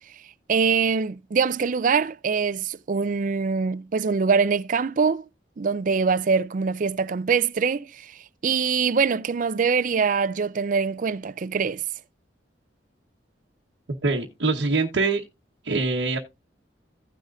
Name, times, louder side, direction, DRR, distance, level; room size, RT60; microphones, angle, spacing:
voice 1, 0.5-5.2 5.6-8.1 8.4-11.8, right 5 dB, 45° right, 0.4 m, -23 dB
voice 2, 14.0-15.2 15.6-16.2, right 3 dB, 90° right, 1.1 m, -23 dB
16.0 x 6.5 x 2.5 m
head